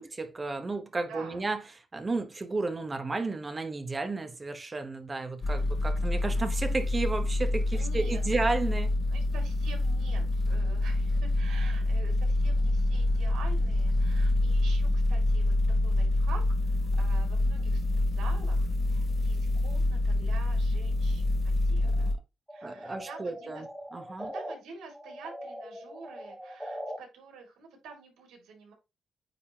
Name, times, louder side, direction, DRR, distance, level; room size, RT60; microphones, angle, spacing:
voice 1, 0.0-1.6 1.9-8.9 21.8-22.1 22.6-24.3, right 3 dB, 30° right, 1.0 m, -33 dB
voice 2, 1.1-1.4 5.4-5.7 7.7-8.4 9.1-15.5 15.8-22.2 22.5-23.6 24.2-28.7, right 4 dB, 90° right, 2.4 m, -48 dB
sound 1, 5.4-22.1, left 2 dB, 35° left, 1.1 m, -26 dB
sound 2, 22.5-24.6 24.9-27.0, equal, 5° right, 1.7 m, -41 dB
9.3 x 3.6 x 2.8 m
cardioid pair, 90°, 0 cm